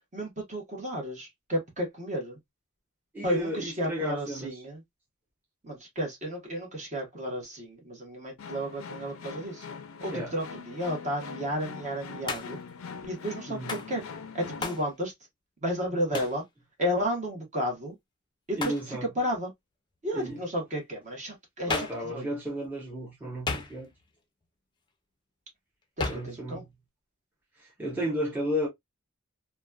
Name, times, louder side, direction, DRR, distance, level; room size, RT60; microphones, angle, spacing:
voice 1, 0.1-2.4 3.2-4.8 5.6-9.7 10.0-12.6 13.0-14.1 14.3-15.1 15.6-16.4 16.8-17.9 18.5-19.5 20.0-22.3 26.0-26.6, equal, 35° right, 1.1 m, -32 dB
voice 2, 3.1-4.5 10.1-10.3 13.5-13.8 16.1-16.2 18.5-19.1 20.1-20.4 21.6-23.9 26.1-26.6 27.8-28.7, equal, 10° right, 0.9 m, -33 dB
sound 1, 8.4-14.8, left 5 dB, 75° left, 0.5 m, -42 dB
Hands, 12.3-12.7 13.7-13.9 14.6-14.9 16.1-16.4 18.6-18.9 21.7-22.1 23.5-24.0 26.0-26.4, left 3 dB, 20° left, 0.5 m, -33 dB
3.0 x 2.2 x 2.2 m
head